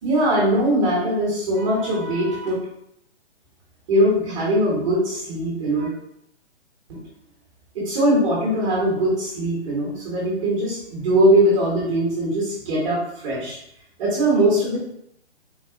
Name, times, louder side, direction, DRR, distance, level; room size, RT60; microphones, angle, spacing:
voice 1, 0.0-2.6 3.9-5.9 6.9-7.0 7.7-13.6 14.0-14.8, right 1 dB, 30° right, -5 dB, 1.1 m, -21 dB
4.0 x 2.3 x 3.6 m, 0.77 s
hypercardioid pair, 155°, 34 cm